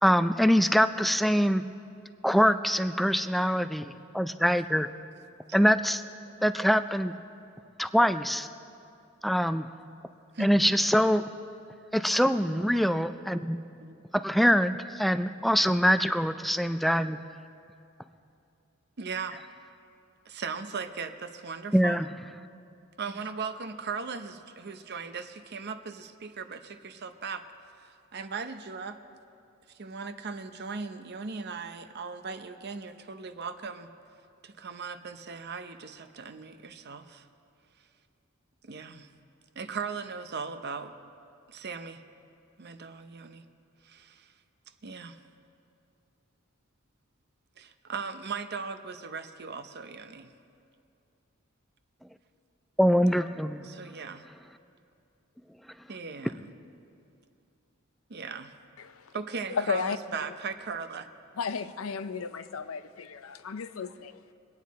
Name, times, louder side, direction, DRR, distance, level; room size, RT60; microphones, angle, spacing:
voice 1, 0.0-1.7 2.2-4.9 5.5-6.0 6.4-7.1 7.8-8.5 9.2-9.7 10.4-11.2 11.9-13.6 14.1-17.2 21.7-22.1 52.8-53.7, equal, ahead, 11 dB, 0.3 m, -24 dB
voice 2, 19.0-19.4 20.3-22.0 23.0-27.4 28.1-29.0 29.8-33.9 34.4-37.3 38.6-39.1 39.6-40.9 41.5-42.0 42.6-43.4 43.8-44.3 44.8-45.2 47.6-50.3 53.6-54.2 55.9-56.3 58.1-58.5 59.1-61.1, right 5 dB, 55° right, 9 dB, 0.7 m, -38 dB
voice 3, 58.8-59.1 59.5-60.0 61.4-64.3, left 5 dB, 85° left, 12 dB, 0.6 m, -34 dB
23.5 x 9.3 x 4.1 m, 2.5 s
head